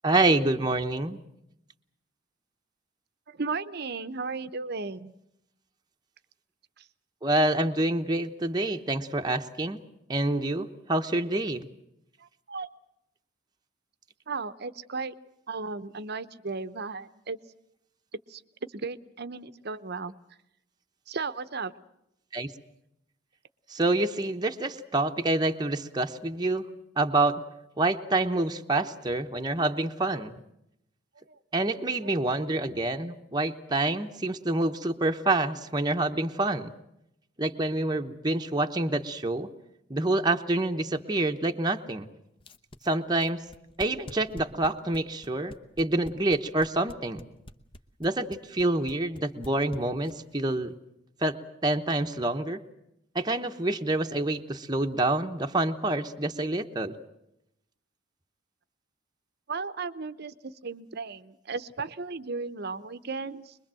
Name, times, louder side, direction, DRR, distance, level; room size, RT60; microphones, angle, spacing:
voice 1, 0.0-1.2 7.2-9.8 10.1-11.7 22.3-22.5 23.7-26.6 27.0-27.4 27.8-30.3 31.5-36.7 37.4-39.5 39.9-42.1 42.8-43.4 43.8-47.3 48.0-50.7 51.2-51.4 51.6-52.6 53.1-56.9, right 2 dB, 20° right, 4 dB, 1.0 m, -27 dB
voice 2, 3.3-5.1 6.8-6.9 12.2-12.7 14.3-15.1 15.5-17.4 18.1-20.1 21.1-21.7 31.3-31.4 32.0-32.1 59.5-63.6, right 4 dB, 55° right, 13 dB, 0.9 m, -35 dB
sound 1, 42.4-50.3, left 1 dB, 25° left, 1.0 m, -45 dB
24.0 x 22.0 x 7.6 m, 0.81 s
head